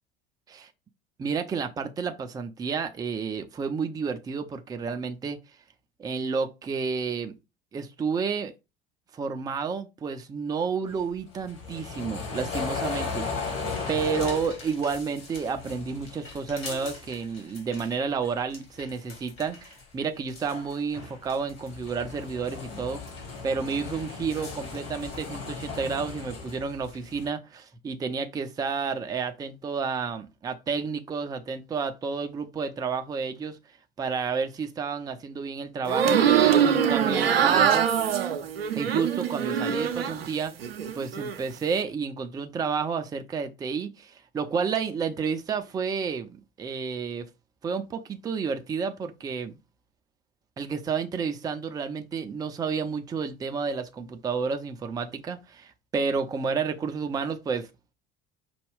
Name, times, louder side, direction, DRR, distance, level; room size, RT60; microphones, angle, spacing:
voice 1, 1.2-5.4 6.0-7.4 7.7-8.5 9.1-13.3 13.9-23.0 23.4-33.6 34.0-37.9 38.8-40.5 40.9-47.3 47.6-49.5 50.6-57.7, right 5 dB, 15° right, 0.4 m, -30 dB
sound 1, 10.9-18.0 18.2-19.8 20.2-27.3, left 4 dB, 40° left, 2.0 m, -37 dB
sound 2, 35.9-40.3 40.6-41.4, right 8 dB, 75° right, 0.6 m, -23 dB
5.2 x 2.2 x 3.6 m
figure-of-eight pair, 70°, 30 cm